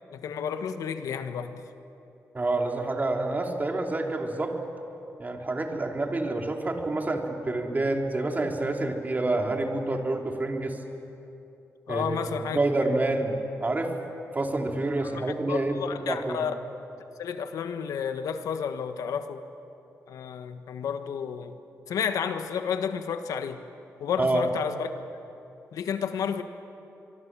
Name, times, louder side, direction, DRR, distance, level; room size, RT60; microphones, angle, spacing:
voice 1, 0.1-1.6 11.9-12.6 15.0-16.5 17.2-19.4 20.1-21.5 21.9-23.6 24.0-24.9 25.7-26.4, left 7 dB, 85° left, 8 dB, 1.4 m, -31 dB
voice 2, 2.3-4.5 5.2-10.8 11.9-13.9 14.3-15.8 16.0-16.4 24.2-24.4, right 2 dB, 30° right, 2 dB, 3.2 m, -28 dB
25.0 x 23.0 x 7.5 m, 2.9 s
cardioid pair, 75°, 6 cm